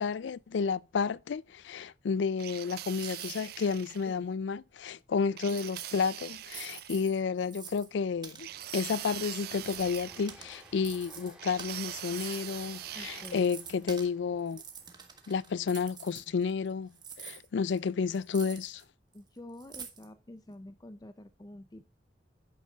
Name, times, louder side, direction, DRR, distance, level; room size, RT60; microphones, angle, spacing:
voice 1, 0.0-14.6 15.3-16.9 17.2-18.8, left 5 dB, 75° left, 0.4 m, -31 dB
sound 1, 2.4-4.1 5.4-7.0 8.4-10.7 11.4-13.5, right 14 dB, 55° right, 0.4 m, -42 dB
sound 2, 2.8-3.6 3.9-4.0 5.4-6.0 6.4-7.9 8.2-9.1 9.5-12.7 13.1-14.1 14.5-16.7 16.9-18.8 19.1-19.2 19.6-20.1, right 6 dB, 25° right, 1.4 m, -47 dB
Train, 6.4-6.5 6.7-6.9 7.3-17.4, equal, 5° right, 2.4 m, -58 dB
voice 2, 12.9-13.5 19.1-21.8, left 1 dB, 20° left, 0.5 m, -48 dB
10.0 x 8.7 x 2.4 m
head